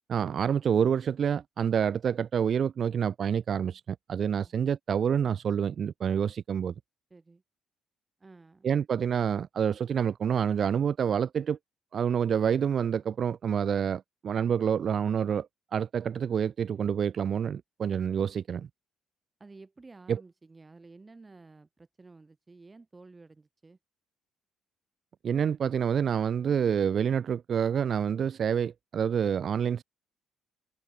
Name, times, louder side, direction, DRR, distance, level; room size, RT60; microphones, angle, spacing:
voice 1, 0.1-6.7 8.6-11.6 11.9-15.5 15.7-18.7 20.1-20.2 25.2-29.8, right 8 dB, 45° right, 0.3 m, -27 dB
voice 2, 7.1-7.4 8.2-8.7 19.4-23.8, right 3 dB, 20° right, 7.7 m, -52 dB
cardioid pair, 110°, 0 cm